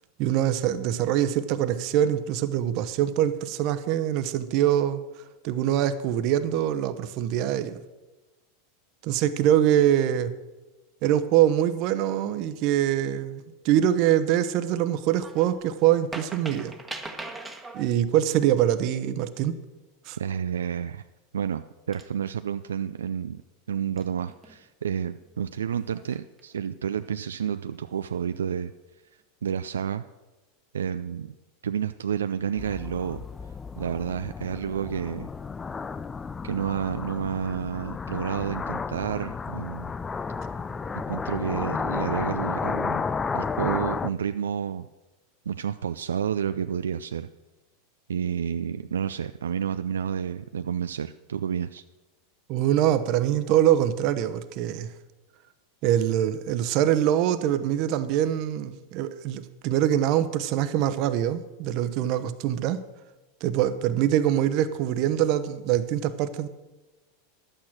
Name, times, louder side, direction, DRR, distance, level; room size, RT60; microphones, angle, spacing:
voice 1, 0.2-5.0 5.4-7.8 9.0-10.3 11.0-16.8 17.7-19.6 20.1-20.2 52.5-54.9 55.8-62.8 63.4-66.5, right 11 dB, 55° right, 0.9 m, -24 dB
sound 1, 15.1-15.6 15.9-17.9 20.6-20.8 21.4-21.5 21.9-22.5 24.0-24.7 25.8-26.4 26.9-27.1, right 2 dB, 10° right, 1.3 m, -41 dB
voice 2, 20.2-21.0 21.3-23.4 23.7-28.7 29.4-30.0 30.7-31.3 31.6-33.2 33.8-35.3 36.4-39.9 40.9-43.0 43.3-44.9 45.5-47.3 48.1-51.8, right 8 dB, 85° right, 0.3 m, -30 dB
sound 2, 32.6-44.1, left 5 dB, 20° left, 0.4 m, -32 dB
11.5 x 8.8 x 6.1 m
hypercardioid pair, 100°, 0 cm